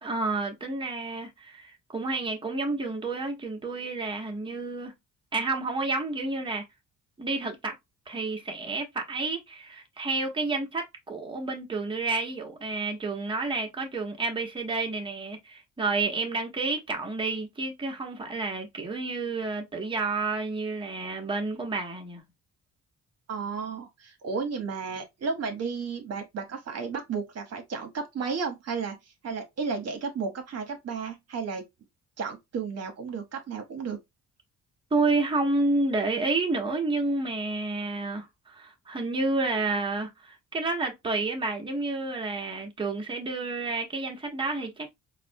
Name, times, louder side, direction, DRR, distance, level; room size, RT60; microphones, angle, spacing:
voice 1, 0.0-4.9 5.3-6.6 7.2-7.7 8.1-22.2 34.9-44.9, right 3 dB, 15° right, 0.9 m, -30 dB
voice 2, 23.3-29.0 29.2-31.6 32.2-34.0, right 5 dB, 55° right, 0.9 m, -33 dB
4.0 x 2.1 x 2.6 m
cardioid pair, 90°, 30 cm